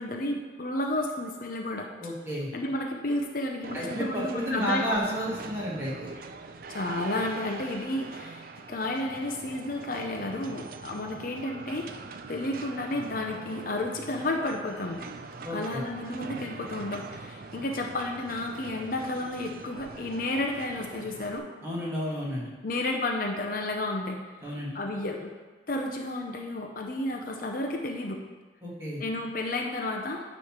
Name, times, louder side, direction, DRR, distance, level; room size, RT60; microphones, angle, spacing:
voice 1, 0.0-1.9 2.5-5.3 6.7-11.9 12.3-15.0 15.5-21.5 22.6-25.3 25.7-28.2 29.0-30.2, left 2 dB, 50° left, 1 dB, 0.6 m, -32 dB
voice 2, 2.0-2.5 3.7-6.1 15.4-15.8 21.6-22.5 24.4-24.8 28.6-29.0, equal, 15° right, -6 dB, 1.6 m, -31 dB
sound 1, 3.6-21.4, right 4 dB, 50° right, 0.4 m, -43 dB
9.4 x 3.2 x 5.9 m, 1.4 s
head